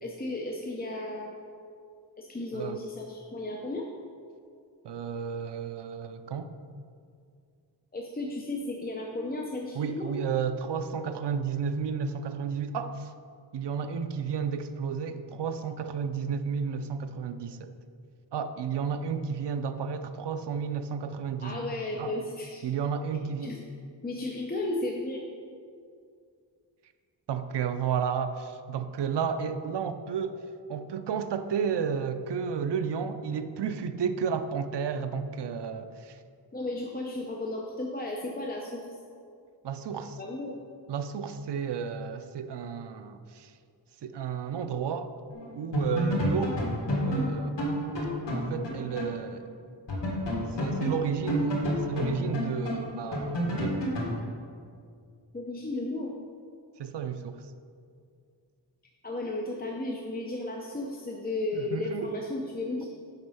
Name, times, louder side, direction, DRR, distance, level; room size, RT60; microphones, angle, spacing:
voice 1, 0.0-1.4 2.2-3.9 7.9-10.1 21.4-22.6 23.4-23.7 24.0-25.2 36.5-39.0 40.2-40.6 50.5-50.7 55.3-56.1 59.0-62.9, left 2 dB, 20° left, -1 dB, 0.7 m, -34 dB
voice 2, 4.8-6.5 9.7-13.1 13.5-17.7 18.3-21.7 22.0-22.1 22.6-23.5 27.3-30.4 30.7-36.2 39.6-40.2 40.9-43.5 44.0-45.1 45.6-46.6 47.0-47.6 48.3-49.5 50.6-51.6 51.9-53.9 56.8-57.5 61.5-62.2, right 6 dB, 70° right, 10 dB, 0.6 m, -32 dB
sound 1, 45.3-45.5 45.7-49.2 49.4-49.5 49.9-54.2, equal, 80° left, 2.1 m, -29 dB
8.0 x 5.3 x 5.5 m, 2.3 s
wide cardioid pair, 115°, 42 cm